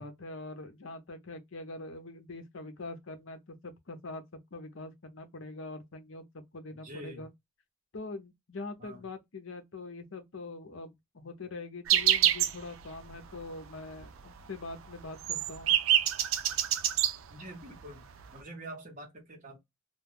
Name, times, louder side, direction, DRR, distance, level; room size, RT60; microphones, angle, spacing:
voice 1, 0.0-4.2 4.5-7.3 7.9-15.8, left 3 dB, 70° left, 0.7 m, -43 dB
voice 2, 6.8-7.3 8.8-9.0 17.3-18.1 18.3-19.6, right 1 dB, 40° right, 0.9 m, -45 dB
sound 1, 11.9-12.6 12.9-13.0 13.4-13.7 14.0-14.1 14.4-17.2 17.9-18.0 18.2-18.4, right 11 dB, 75° right, 0.4 m, -26 dB
2.3 x 2.3 x 3.3 m
head